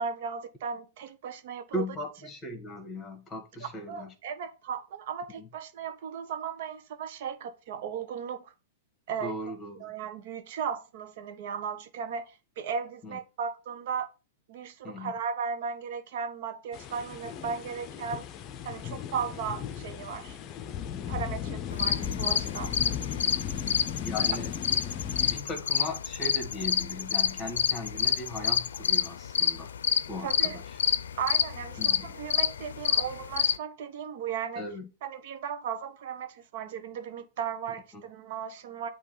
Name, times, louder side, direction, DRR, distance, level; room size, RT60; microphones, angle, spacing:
voice 1, 0.0-1.8 3.6-8.5 9.1-9.4 9.8-14.1 14.5-18.2 18.6-20.4 21.1-22.7 30.2-30.6 31.2-34.7 35.0-38.9, right 6 dB, 60° right, 1.1 m, -36 dB
voice 2, 1.7-4.1 5.4-5.5 9.2-9.9 13.0-13.2 14.8-15.1 24.0-24.5 25.2-29.7 30.1-30.6 31.8-32.1 34.6-34.9, left 1 dB, 15° left, 1.8 m, -38 dB
sound 1, 16.7-25.4, left 9 dB, 35° left, 0.6 m, -36 dB
sound 2, 21.7-33.6, left 8 dB, 90° left, 0.5 m, -28 dB
8.3 x 2.9 x 5.7 m
hypercardioid pair, 135°, 0 cm